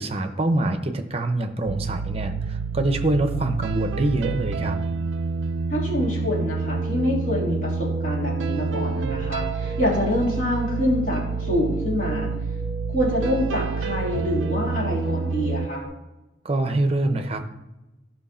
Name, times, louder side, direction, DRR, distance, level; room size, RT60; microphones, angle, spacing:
voice 1, 0.0-4.8 16.4-17.4, right 2 dB, 30° right, 7 dB, 0.8 m, -25 dB
sound 1, 1.7-15.7, right 4 dB, 80° right, 0.4 m, -28 dB
voice 2, 5.7-12.3 12.9-15.8, left 1 dB, 40° left, -4 dB, 3.2 m, -26 dB
sound 2, 6.3-15.8, right 3 dB, ahead, 1.8 m, -40 dB
13.5 x 5.8 x 4.3 m, 1.0 s
head